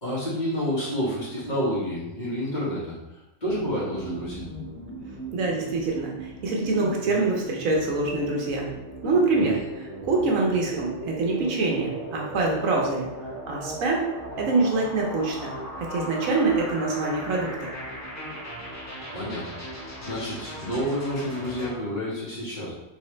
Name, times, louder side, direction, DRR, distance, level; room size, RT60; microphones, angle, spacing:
voice 1, 0.0-2.9 3.4-4.4 9.4-9.6 19.1-19.4 19.7-22.7, equal, 35° left, -8 dB, 1.6 m, -29 dB
sound 1, 3.4-21.7, equal, 15° left, 0.7 m, -38 dB
voice 2, 5.3-8.7 9.0-14.0 14.4-17.7, right 3 dB, 85° right, -1 dB, 1.3 m, -25 dB
3.8 x 3.7 x 3.2 m, 0.95 s
omnidirectional pair, 1.4 m